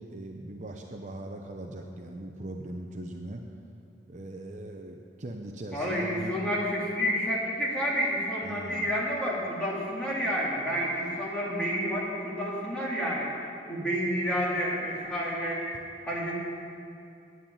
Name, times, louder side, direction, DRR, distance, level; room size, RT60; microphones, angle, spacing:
voice 1, 0.0-3.4 4.1-6.4 8.4-8.9, right 1 dB, 40° right, 2 dB, 0.7 m, -40 dB
voice 2, 5.7-15.7 16.0-16.4, equal, 5° left, -6 dB, 2.6 m, -30 dB
9.4 x 9.4 x 8.8 m, 2.5 s
head